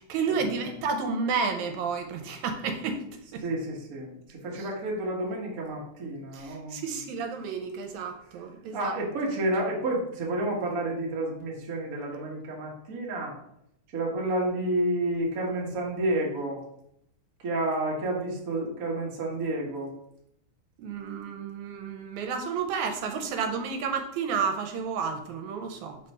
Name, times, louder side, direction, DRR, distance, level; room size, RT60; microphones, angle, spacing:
voice 1, 0.0-3.0 3.3-3.4 6.3-8.9 20.8-26.0, right 5 dB, 80° right, 5 dB, 2.0 m, -31 dB
voice 2, 3.4-7.0 8.7-13.3 13.9-16.6 17.4-19.9, right 1 dB, 45° right, -2 dB, 1.2 m, -30 dB
5.3 x 3.3 x 5.4 m, 0.74 s
omnidirectional pair, 3.3 m